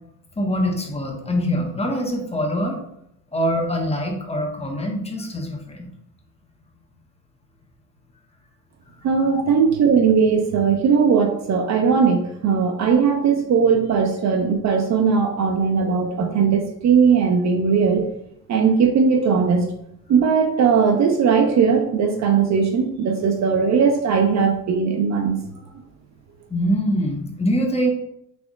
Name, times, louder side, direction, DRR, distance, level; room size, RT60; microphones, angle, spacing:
voice 1, 0.4-2.8 3.3-5.9 26.5-27.9, equal, 15° left, 1 dB, 1.2 m, -24 dB
voice 2, 9.0-18.1 18.5-19.6 20.1-25.4, right 6 dB, 40° right, 4 dB, 0.7 m, -18 dB
6.1 x 3.6 x 2.4 m, 0.76 s
hypercardioid pair, 70°, 41 cm